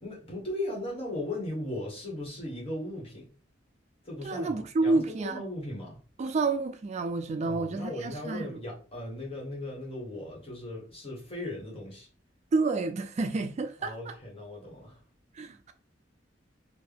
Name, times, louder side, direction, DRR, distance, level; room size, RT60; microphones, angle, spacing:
voice 1, 0.0-3.3 4.0-6.0 7.5-12.1 13.8-15.0, left 1 dB, 30° left, 1.7 m, -37 dB
voice 2, 4.2-5.5 6.2-8.6 12.5-14.1 15.3-15.7, right 3 dB, 40° right, 0.3 m, -29 dB
4.5 x 2.6 x 3.5 m
head